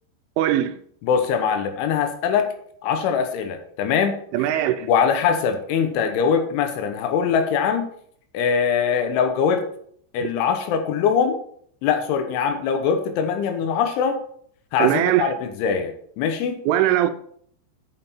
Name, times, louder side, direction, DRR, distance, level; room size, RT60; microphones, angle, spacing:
voice 1, 0.4-0.8 4.3-4.9 14.8-15.3 16.7-17.1, right 12 dB, 85° right, 3.1 m, -20 dB
voice 2, 1.0-2.5 2.8-4.2 4.8-7.9 8.3-9.6 10.1-11.4 11.8-14.2 14.7-16.6, left 6 dB, 80° left, 3.4 m, -22 dB
8.8 x 6.6 x 4.4 m
omnidirectional pair, 5.6 m